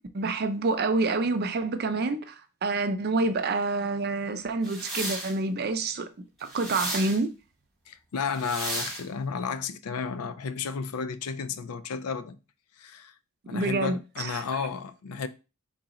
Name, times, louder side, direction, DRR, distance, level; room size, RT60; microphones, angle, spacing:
voice 1, 0.1-2.4 2.6-6.1 6.4-7.3 13.4-14.4, right 3 dB, 45° right, 0.5 m, -27 dB
sound 1, 4.6-5.4 6.5-7.2 8.3-9.0, right 1 dB, ahead, 1.4 m, -33 dB
voice 2, 7.9-12.4 12.8-13.1 13.5-15.3, left 5 dB, 80° left, 0.4 m, -33 dB
4.0 x 2.9 x 3.7 m
head